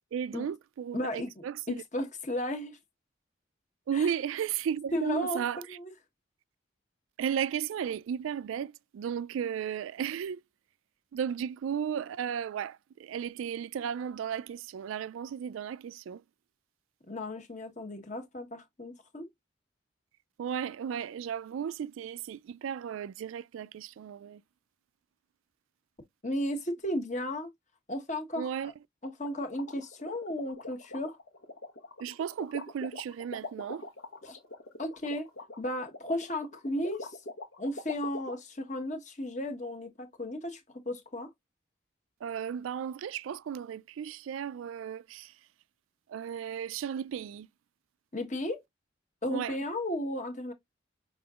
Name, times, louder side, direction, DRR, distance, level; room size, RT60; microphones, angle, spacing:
voice 1, 0.1-0.5 0.9-1.0 3.9-5.6 7.2-10.4 11.1-12.7 13.1-16.2 20.4-24.4 28.4-28.7 32.0-33.8 42.2-45.2 46.1-47.5 49.3-49.5, right 8 dB, 85° right, 0.3 m, -34 dB
voice 2, 0.9-2.8 3.9-4.1 4.9-5.9 17.1-19.3 26.2-27.5 27.9-28.7 29.0-31.2 34.2-34.4 34.8-35.3 35.6-37.2 37.6-41.3 48.1-48.6 49.2-50.5, left 1 dB, 35° left, 1.1 m, -35 dB
sound 1, 29.2-38.3, left 2 dB, 85° left, 1.3 m, -43 dB
6.1 x 3.7 x 2.4 m
head